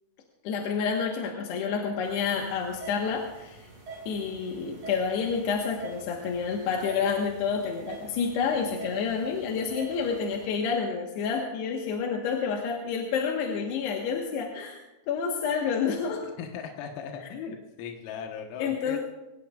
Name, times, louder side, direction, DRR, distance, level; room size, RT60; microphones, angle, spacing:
voice 1, 0.4-3.6 4.1-14.8 15.1-16.2 18.6-19.0, left 6 dB, 65° left, 0 dB, 3.1 m, -29 dB
sound 1, 2.0-10.4, right 3 dB, 25° right, 4.7 m, -46 dB
voice 2, 16.4-19.0, left 6 dB, 85° left, 2 dB, 4.0 m, -38 dB
23.0 x 18.5 x 2.5 m, 1.0 s
omnidirectional pair, 5.8 m